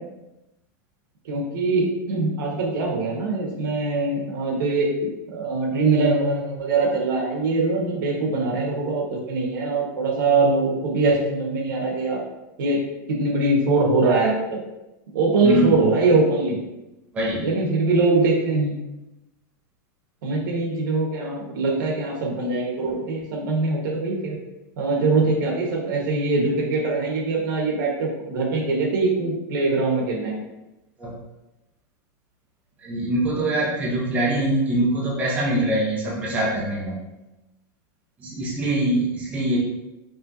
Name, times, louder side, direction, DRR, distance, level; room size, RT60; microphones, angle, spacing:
voice 1, 1.2-12.2 12.6-12.8 13.1-14.6 15.1-16.6 17.4-18.7 20.2-24.4 24.8-30.4, right 3 dB, 70° right, -1 dB, 1.3 m, -22 dB
voice 2, 15.4-15.8 17.1-17.5 31.0-31.2 32.8-37.0 38.2-39.6, right 1 dB, 15° right, -5 dB, 0.7 m, -23 dB
5.5 x 2.9 x 2.7 m, 0.98 s
supercardioid pair, 170°, 11 cm